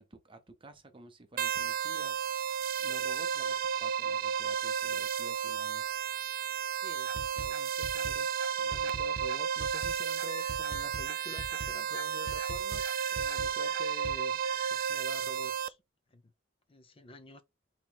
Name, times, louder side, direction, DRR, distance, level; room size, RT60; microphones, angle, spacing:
voice 1, 0.0-2.2 2.8-5.9, right 2 dB, 25° right, 0.8 m, -52 dB
sound 1, 1.4-15.7, right 8 dB, 50° right, 0.3 m, -33 dB
voice 2, 6.8-14.4 14.7-15.8 16.1-16.2 16.7-17.4, left 2 dB, 30° left, 0.6 m, -49 dB
sound 2, 7.1-14.2, right 2 dB, 65° right, 1.0 m, -42 dB
sound 3, 10.3-15.2, left 4 dB, 85° left, 1.4 m, -50 dB
4.3 x 3.0 x 3.9 m
head